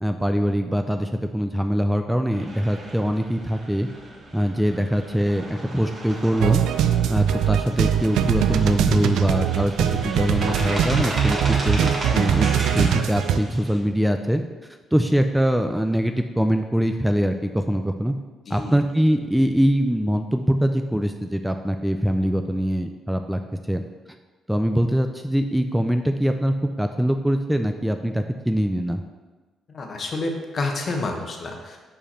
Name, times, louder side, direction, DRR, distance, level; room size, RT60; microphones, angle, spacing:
voice 1, 0.0-3.9 4.3-6.6 7.1-14.4 14.9-18.1 18.5-23.4 23.7-23.8 24.5-29.0, equal, 5° right, 6 dB, 0.3 m, -23 dB
sound 1, 2.3-13.8, right 1 dB, 40° right, 1.5 m, -35 dB
sound 2, 6.4-13.4, right 9 dB, 85° right, 0.3 m, -22 dB
voice 2, 18.5-18.8 29.7-31.8, left 2 dB, 45° left, 3 dB, 1.0 m, -29 dB
5.0 x 5.0 x 4.3 m, 1.3 s
cardioid pair, 90°, 0 cm